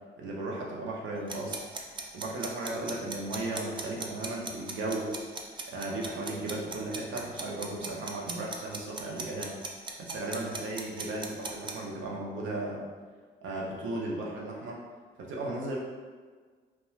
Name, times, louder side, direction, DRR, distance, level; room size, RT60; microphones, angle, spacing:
voice 1, 0.2-1.6 2.1-5.2 5.7-9.5 10.0-12.8 13.4-14.8 15.2-15.8, right 2 dB, 75° right, -2 dB, 0.6 m, -35 dB
sound 1, 1.3-11.7, right 3 dB, 25° right, 0.3 m, -38 dB
2.3 x 2.2 x 3.0 m, 1.5 s
cardioid pair, 90°, 20 cm